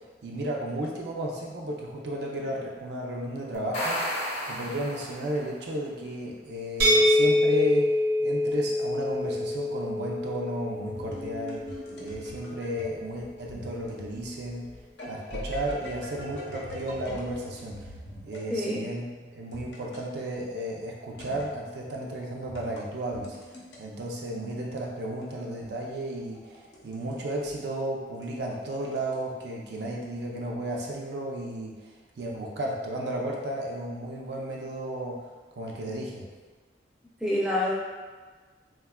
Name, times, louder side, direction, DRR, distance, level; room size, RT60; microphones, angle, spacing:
voice 1, 0.2-4.0 4.5-7.9 8.2-11.7 12.0-14.7 15.1-17.9 18.2-23.4 23.8-26.4 26.8-31.8 32.2-35.2 35.6-36.3, right 1 dB, 70° right, -2 dB, 0.4 m, -33 dB
sound 1, 3.5-5.5, equal, 40° left, 0.7 m, -32 dB
sound 2, 6.8-12.6, left 1 dB, 90° right, 1.0 m, -26 dB
sound 3, 10.9-18.5 19.5-20.1 21.2-21.6 22.4-23.8 25.2-27.2 27.5-27.6 28.1-29.2, left 1 dB, 80° left, 0.6 m, -42 dB
voice 2, 18.5-18.8 37.2-37.7, left 1 dB, 5° right, -6 dB, 0.4 m, -26 dB
3.5 x 2.2 x 2.2 m, 1.4 s
head